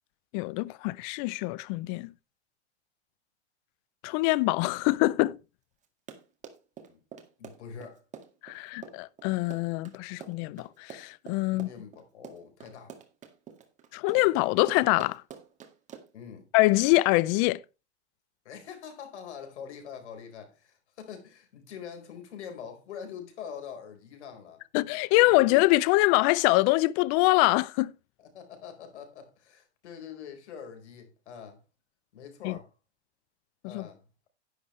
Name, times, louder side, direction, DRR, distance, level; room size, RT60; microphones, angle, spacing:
voice 1, 0.3-2.1 4.0-5.4 8.4-11.7 13.9-15.2 16.5-17.6 24.7-27.9 32.4-32.6 33.6-33.9, left 21 dB, 30° left, 0.5 m, -24 dB
Run, 5.8-16.3, right 7 dB, 20° right, 1.9 m, -47 dB
voice 2, 7.4-8.0 11.5-13.0 16.1-16.5 18.4-24.6 25.2-25.6 28.2-31.6 32.1-32.7 33.6-34.3, left 7 dB, 70° left, 4.4 m, -44 dB
11.0 x 10.5 x 3.2 m
hypercardioid pair, 140°, 35 cm